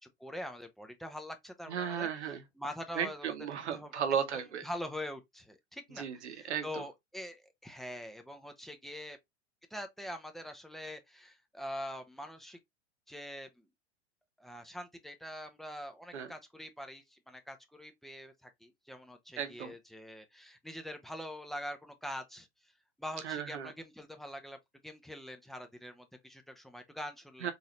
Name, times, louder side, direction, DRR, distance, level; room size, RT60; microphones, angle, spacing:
voice 1, 0.0-3.3 3.7-4.0 4.6-9.2 9.7-12.6 13.1-13.7 14.4-22.5 23.0-24.6 24.8-27.5, equal, ahead, 0.7 m, -44 dB
voice 2, 1.7-2.4 2.9-4.7 6.0-6.8 16.1-16.3 19.4-19.7 23.2-23.7 27.4-27.5, right 8 dB, 80° right, 1.0 m, -35 dB
3.9 x 2.7 x 3.0 m
hypercardioid pair, 100°, 34 cm